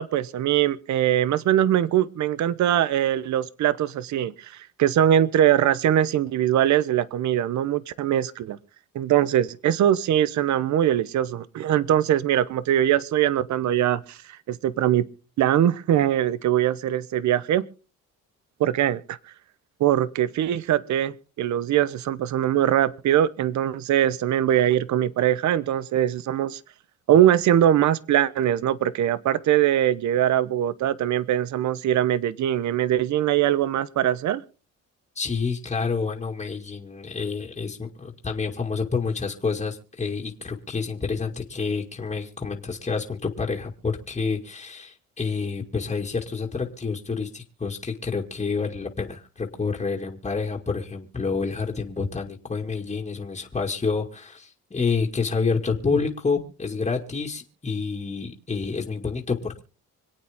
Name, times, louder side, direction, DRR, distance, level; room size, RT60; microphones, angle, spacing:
voice 1, 0.0-8.6 8.9-14.2 14.5-15.0 15.4-17.6 18.6-19.2 19.8-26.6 27.1-34.4, right 11 dB, 70° right, 18 dB, 0.8 m, -22 dB
voice 2, 35.2-59.6, left 4 dB, 20° left, 0 dB, 2.2 m, -28 dB
26.0 x 8.8 x 3.6 m, 0.36 s
cardioid pair, 90°, 30 cm